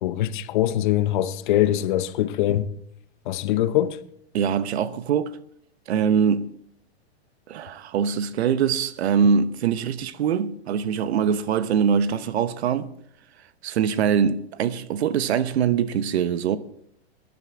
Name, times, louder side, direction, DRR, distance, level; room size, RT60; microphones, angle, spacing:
voice 1, 0.0-2.7 3.3-4.0, left 13 dB, 50° left, 0.8 m, -23 dB
voice 2, 4.3-5.3 5.9-6.5 7.5-12.9 13.6-16.6, right 7 dB, 75° right, 0.9 m, -23 dB
18.5 x 10.5 x 3.7 m
supercardioid pair, 160°, 32 cm